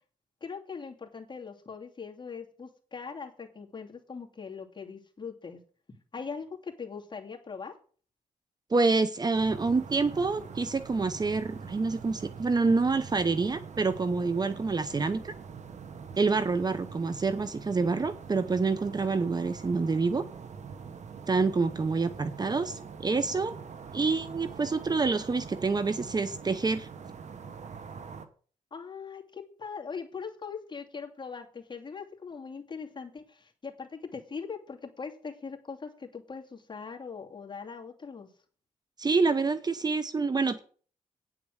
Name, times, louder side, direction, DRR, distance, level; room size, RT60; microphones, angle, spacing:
voice 1, 0.4-5.6 6.1-7.7 28.7-38.3, left 5 dB, 35° left, 2 dB, 2.6 m, -41 dB
voice 2, 8.7-15.3 16.2-20.2 21.3-23.5 23.9-26.9 39.0-40.6, right 4 dB, 30° right, 12 dB, 0.9 m, -27 dB
sound 1, 9.3-28.3, right 6 dB, 55° right, 1.3 m, -44 dB
9.5 x 7.4 x 6.4 m, 0.42 s
cardioid pair, 90°, 14 cm